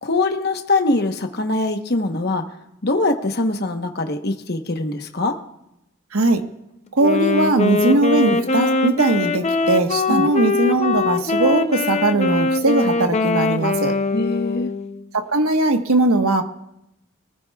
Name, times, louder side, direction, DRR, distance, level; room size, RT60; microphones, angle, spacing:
voice 1, 0.0-2.4 2.8-5.4 10.1-10.3 14.1-14.7, left 2 dB, 50° left, 5 dB, 1.0 m, -22 dB
Wind instrument woodwind instrument, 7.0-15.0, left 3 dB, 30° left, 0.6 m, -22 dB
voice 2, 7.0-13.9 15.1-16.4, right 2 dB, 90° right, 5 dB, 1.3 m, -19 dB
23.5 x 14.5 x 2.3 m, 0.83 s
head